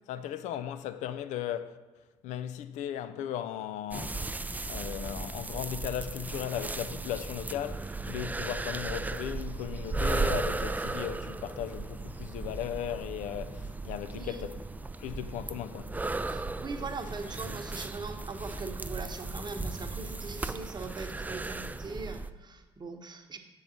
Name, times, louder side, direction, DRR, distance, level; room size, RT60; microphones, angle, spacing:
voice 1, 0.1-1.8 2.2-4.3 4.7-14.6 15.0-16.0, left 10 dB, 70° left, 0.4 m, -37 dB
sound 1, 3.9-22.3, right 3 dB, 15° right, 0.4 m, -36 dB
voice 2, 14.1-14.4 16.3-23.4, right 4 dB, 35° right, 1.0 m, -41 dB
7.0 x 3.9 x 6.3 m
hypercardioid pair, 50°, 13 cm